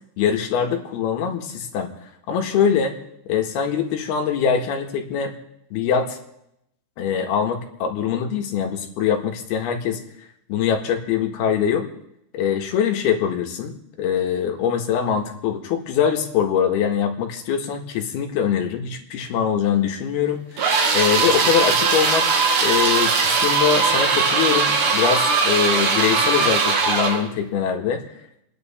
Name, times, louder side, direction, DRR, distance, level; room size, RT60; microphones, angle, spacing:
voice 1, 0.2-1.9 2.3-2.9 3.3-5.3 5.7-6.2 7.0-10.0 10.5-11.9 12.3-20.7 20.9-28.0, left 7 dB, 85° left, 3 dB, 3.6 m, -23 dB
sound 1, 20.6-27.3, right 4 dB, 80° right, 4.0 m, -19 dB
29.0 x 10.5 x 4.3 m, 0.79 s
omnidirectional pair, 4.4 m